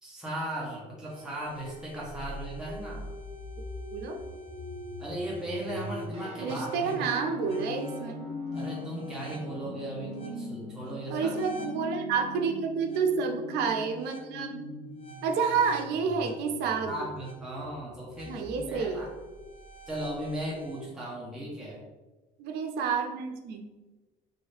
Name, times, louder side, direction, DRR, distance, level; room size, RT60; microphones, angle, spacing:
voice 1, 0.0-3.1 5.0-6.9 8.5-11.3 16.9-19.1 19.9-21.8, right 1 dB, 5° right, -6 dB, 0.8 m, -37 dB
sound 1, 1.1-20.8, left 1 dB, 35° left, 0.6 m, -42 dB
sound 2, 6.1-17.3, right 1 dB, 35° right, 1.2 m, -48 dB
voice 2, 6.4-8.2 11.1-14.7 15.2-17.1 18.3-19.1 22.4-23.7, right 5 dB, 80° right, 4 dB, 0.5 m, -29 dB
3.1 x 2.7 x 3.2 m, 1.2 s
cardioid pair, 110°, 17 cm